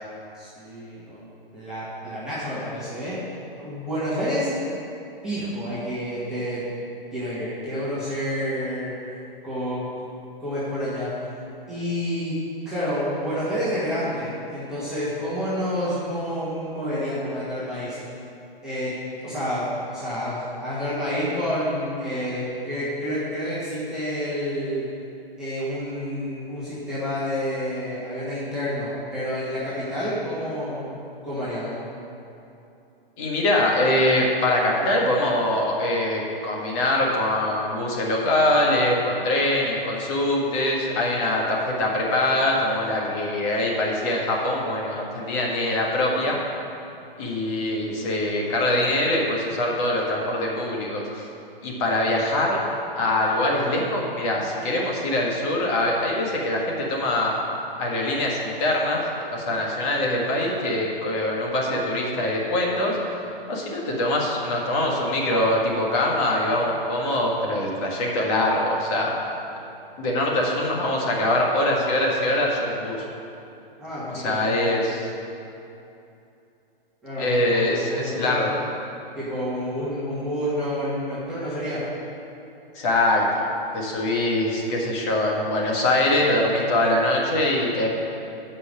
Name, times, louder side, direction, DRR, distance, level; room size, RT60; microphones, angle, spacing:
voice 1, 0.3-1.2 1.5-3.2 3.6-4.5 5.2-6.7 7.1-8.9 9.4-9.9 10.4-11.1 11.7-18.0 18.6-18.9 19.2-24.9 25.4-31.0 31.2-31.8 73.8-75.0 77.0-78.5 79.2-81.8, equal, ahead, -14 dB, 1.9 m, -29 dB
voice 2, 33.2-46.4 47.2-51.3 51.6-52.6 53.0-57.3 57.8-59.0 59.3-69.1 70.0-73.1 74.1-75.1 77.2-78.5 82.7-83.4 83.7-87.9, left 1 dB, 30° left, -2 dB, 1.6 m, -23 dB
8.2 x 5.6 x 6.8 m, 2.8 s
hypercardioid pair, 150°, 29 cm